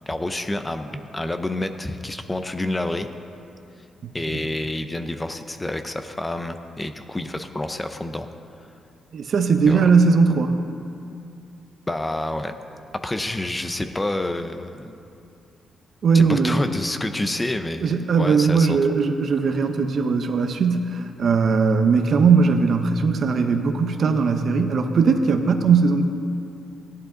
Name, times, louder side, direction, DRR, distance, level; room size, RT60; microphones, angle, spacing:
voice 1, 0.0-3.1 4.1-8.3 9.7-9.9 11.9-12.5 12.9-15.0 16.1-18.8, left 1 dB, 15° left, 8 dB, 0.6 m, -28 dB
voice 2, 4.0-4.4 9.1-10.5 16.0-16.6 17.8-26.1, right 5 dB, 55° right, 7 dB, 0.8 m, -19 dB
15.5 x 10.5 x 3.9 m, 2.6 s
cardioid pair, 100°, 0 cm